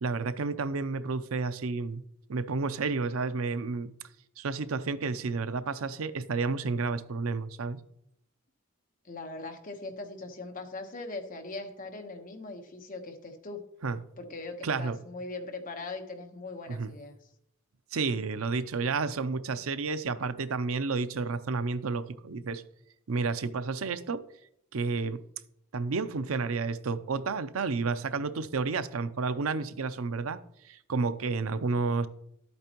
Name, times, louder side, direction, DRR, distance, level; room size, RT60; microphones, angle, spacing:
voice 1, 0.0-2.0 2.3-3.9 4.4-7.8 13.8-14.0 14.6-15.0 16.7-16.9 17.9-22.6 23.1-24.2 24.7-25.2 25.7-30.4 30.7-32.1, right 4 dB, 80° right, 13 dB, 0.6 m, -31 dB
voice 2, 9.0-13.6 14.2-17.2, left 3 dB, 40° left, 4 dB, 1.2 m, -40 dB
11.5 x 8.5 x 3.0 m, 0.74 s
head